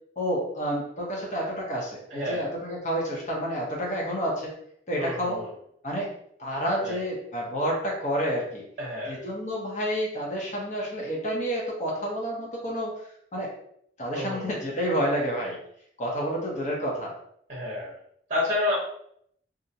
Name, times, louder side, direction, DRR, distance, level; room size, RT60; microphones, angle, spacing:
voice 1, 0.2-4.5 4.9-5.4 5.8-6.1 6.4-8.6 9.1-12.9 13.3-13.5 14.0-15.6 16.0-17.1, equal, 40° left, -2 dB, 0.7 m, -29 dB
voice 2, 2.1-2.5 5.0-5.5 6.8-7.0 8.8-9.2 14.1-14.5 17.5-17.9 18.3-18.8, left 2 dB, 40° right, -5 dB, 0.7 m, -30 dB
2.4 x 2.1 x 2.7 m, 0.68 s
head